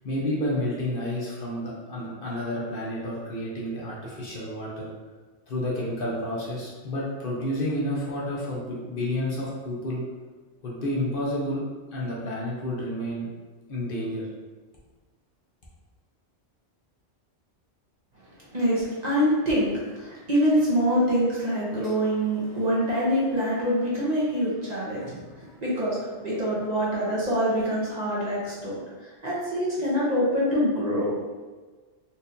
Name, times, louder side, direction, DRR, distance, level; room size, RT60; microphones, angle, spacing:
voice 1, 0.0-4.9 5.5-10.0 10.6-11.6 11.9-13.3 13.7-14.3, left 1 dB, 55° left, -5 dB, 0.9 m, -30 dB
voice 2, 18.5-26.0 26.2-31.1, equal, 40° right, -7 dB, 0.8 m, -25 dB
4.2 x 2.5 x 2.6 m, 1.3 s
omnidirectional pair, 1.2 m